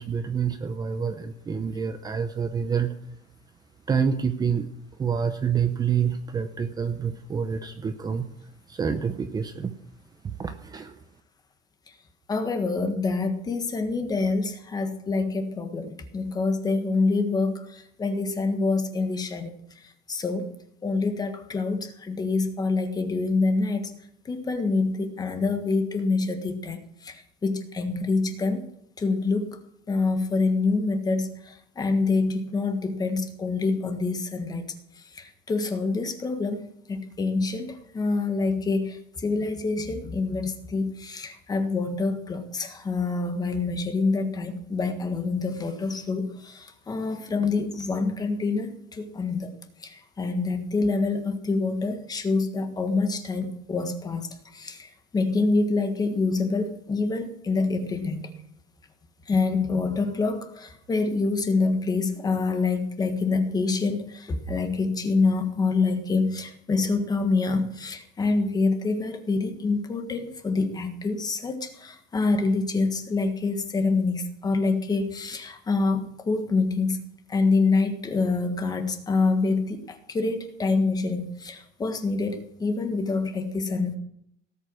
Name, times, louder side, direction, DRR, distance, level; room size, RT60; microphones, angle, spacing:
voice 1, 0.0-2.9 3.9-4.7 5.0-8.3 8.7-9.7 10.2-11.0, right 6 dB, 20° right, 8 dB, 0.7 m, -27 dB
voice 2, 12.3-20.5 20.8-23.9 24.2-28.6 29.0-29.6 29.9-34.6 35.1-36.6 36.9-49.5 49.8-58.3 59.3-77.0 77.3-84.0, left 3 dB, 20° left, 7 dB, 1.6 m, -26 dB
18.0 x 8.3 x 6.3 m, 0.73 s
cardioid pair, 180°, 21 cm